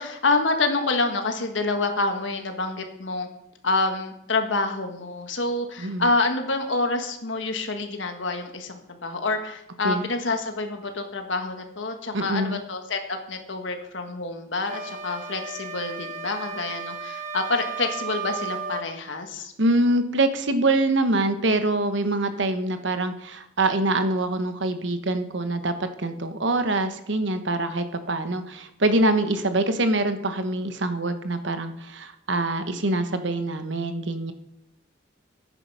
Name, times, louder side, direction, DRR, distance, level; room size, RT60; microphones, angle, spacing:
voice 1, 0.0-3.3 3.6-19.5, left 3 dB, 70° left, 5 dB, 1.6 m, -27 dB
voice 2, 12.1-12.6 19.6-34.3, right 2 dB, 65° right, 9 dB, 1.1 m, -24 dB
sound 1, 14.7-18.9, right 5 dB, 45° right, 1.3 m, -34 dB
12.0 x 9.3 x 5.6 m, 0.82 s
head